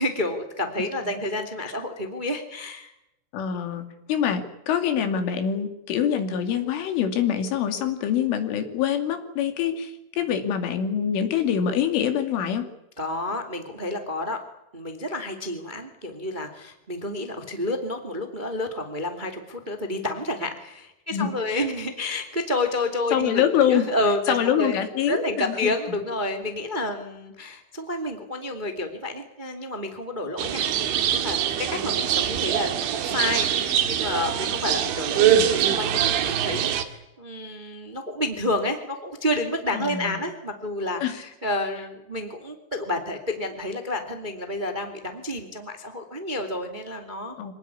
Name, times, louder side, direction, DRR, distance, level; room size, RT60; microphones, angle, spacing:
voice 1, 0.0-2.9 13.0-14.4 14.7-23.4 23.7-24.7 25.1-47.5, left 1 dB, 20° right, 6 dB, 1.3 m, -30 dB
voice 2, 3.3-12.7 21.1-21.6 23.1-23.9 24.3-26.0 39.7-40.3 41.0-41.1 47.4-47.5, left 8 dB, 80° left, 7 dB, 5.0 m, -25 dB
sound 1, 30.4-36.8, right 9 dB, 75° right, 4.1 m, -23 dB
25.5 x 18.5 x 9.8 m, 0.86 s
omnidirectional pair, 5.6 m